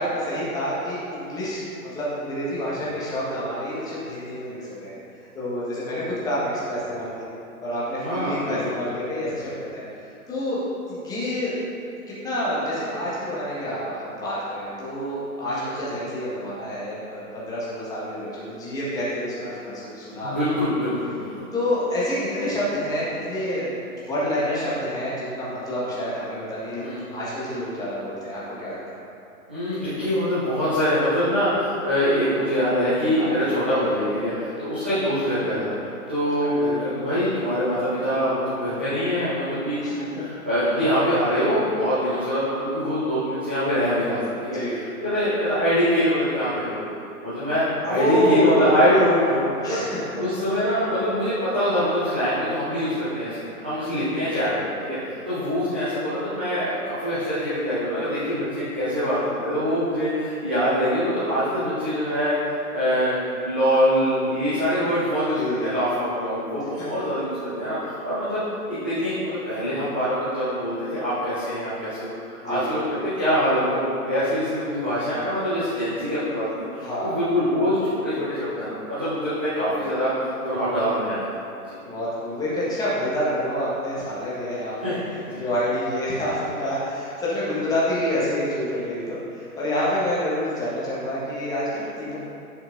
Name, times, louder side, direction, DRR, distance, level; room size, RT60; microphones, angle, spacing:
voice 1, 0.0-4.9 5.3-7.3 7.6-9.8 10.3-10.6 10.9-11.5 12.1-20.3 21.5-29.0 33.1-33.3 39.8-40.0 44.5-44.7 47.9-49.1 49.6-50.3 53.8-54.0 65.3-65.8 72.4-72.7 76.8-77.3 81.8-84.9 85.4-92.2, equal, 10° left, -9 dB, 1.4 m, -28 dB
voice 2, 8.0-8.7 15.4-15.8 20.2-21.4 26.8-27.0 29.5-44.6 45.0-46.8 47.2-49.8 50.2-63.1 63.4-72.1 72.4-81.7 84.8-85.4, equal, 10° right, -16 dB, 0.4 m, -24 dB
10.5 x 6.1 x 2.6 m, 2.7 s
figure-of-eight pair, 125°, 44 cm